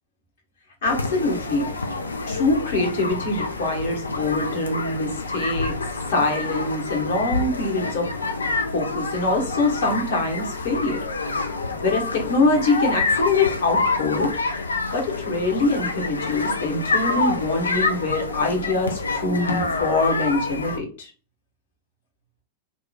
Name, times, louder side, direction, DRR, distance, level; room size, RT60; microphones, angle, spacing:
sound 1, 0.8-20.8, left 3 dB, 75° left, 0.3 m, -27 dB
voice 1, 0.8-1.8 2.3-5.7 6.1-8.1 8.7-11.0 11.3-11.4 11.8-21.1, left 2 dB, 60° left, 0 dB, 1.0 m, -24 dB
2.8 x 2.2 x 2.2 m, 0.38 s
figure-of-eight pair, 90°, 0 cm